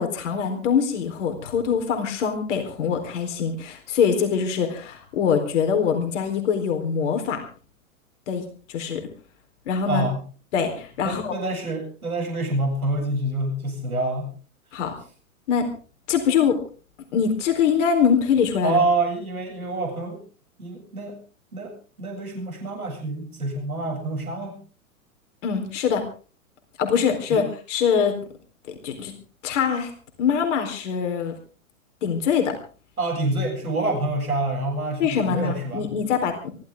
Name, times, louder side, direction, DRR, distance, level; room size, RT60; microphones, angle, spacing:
voice 1, 0.0-7.4 8.3-9.0 9.7-10.0 10.5-11.3 14.7-14.9 15.5-15.7 16.1-16.6 17.1-18.8 25.4-26.0 26.8-28.2 28.7-29.1 29.4-29.9 30.2-31.3 32.0-32.6 35.0-36.5, left 7 dB, 55° left, 5 dB, 4.1 m, -23 dB
voice 2, 9.9-10.2 11.0-14.3 18.6-20.2 20.6-21.2 21.5-24.6 27.0-27.4 33.0-35.9, right 2 dB, 85° right, 1 dB, 8.0 m, -27 dB
23.5 x 15.5 x 3.8 m, 0.38 s
hypercardioid pair, 110°, 42 cm